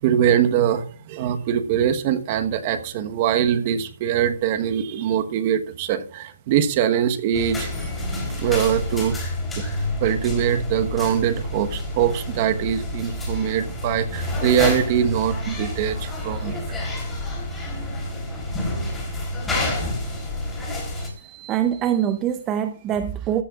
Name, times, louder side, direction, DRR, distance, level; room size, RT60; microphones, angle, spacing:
voice 1, 0.0-7.7 8.4-9.2 9.5-16.6, right 9 dB, 35° right, 9 dB, 1.2 m, -22 dB
sound 1, 7.3-21.1, left 1 dB, 10° left, 3.6 m, -29 dB
voice 2, 21.0-23.4, right 10 dB, 20° right, 11 dB, 0.6 m, -24 dB
15.0 x 13.0 x 2.5 m, 0.44 s
hypercardioid pair, 150°, 0 cm